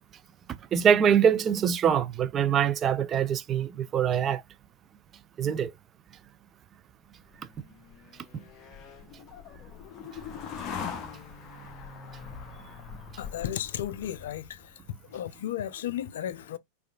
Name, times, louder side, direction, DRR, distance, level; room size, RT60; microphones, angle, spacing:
voice 1, 0.7-4.4 5.4-5.7, right 8 dB, 25° right, 0.4 m, -24 dB
sound 1, 7.3-14.7, left 6 dB, 35° left, 0.7 m, -42 dB
voice 2, 13.2-14.8 15.1-16.6, left 11 dB, 60° left, 0.4 m, -34 dB
4.8 x 2.4 x 2.3 m
figure-of-eight pair, 90°, 0 cm